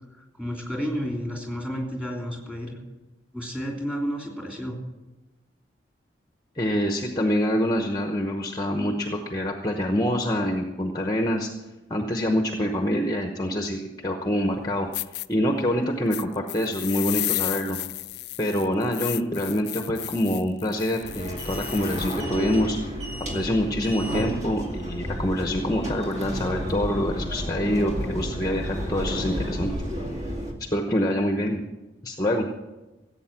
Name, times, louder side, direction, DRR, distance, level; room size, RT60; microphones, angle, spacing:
voice 1, 0.4-2.8 3.3-4.8, equal, 5° right, -1 dB, 3.2 m, -31 dB
voice 2, 6.6-11.5 11.9-14.9 15.3-17.8 18.4-22.8 23.3-29.7 30.7-31.6 32.0-32.5, equal, 20° left, 4 dB, 0.9 m, -26 dB
sound 1, 14.5-14.6 14.9-15.3 16.1-22.2, left 18 dB, 60° left, 0.4 m, -33 dB
sound 2, 21.0-30.5, equal, 35° right, 2.3 m, -31 dB
15.5 x 8.4 x 7.4 m, 1.1 s
head